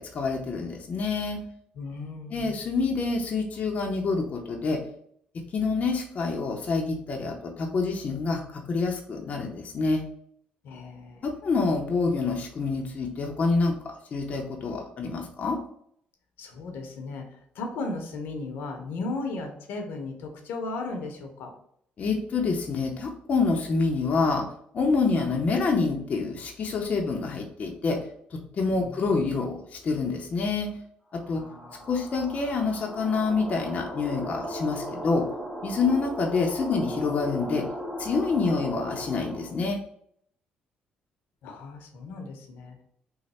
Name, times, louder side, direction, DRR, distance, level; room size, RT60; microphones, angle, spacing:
voice 1, 0.0-1.4 2.3-4.8 5.5-8.4 8.7-10.0 11.2-13.7 14.1-15.6 22.0-24.4 24.7-28.0 28.3-29.6 29.8-30.7 31.3-31.4 31.9-35.2 35.6-37.6 38.0-39.8, left 4 dB, 45° left, 1 dB, 0.6 m, -27 dB
voice 2, 1.7-2.6 10.6-11.3 16.4-17.3 17.5-21.5 28.7-29.4 31.3-31.9 41.4-42.8, left 3 dB, 80° left, 3 dB, 0.8 m, -36 dB
sound 1, 31.2-39.6, equal, 15° right, 0.9 m, -37 dB
3.1 x 2.1 x 4.1 m, 0.67 s
cardioid pair, 95°, 3 cm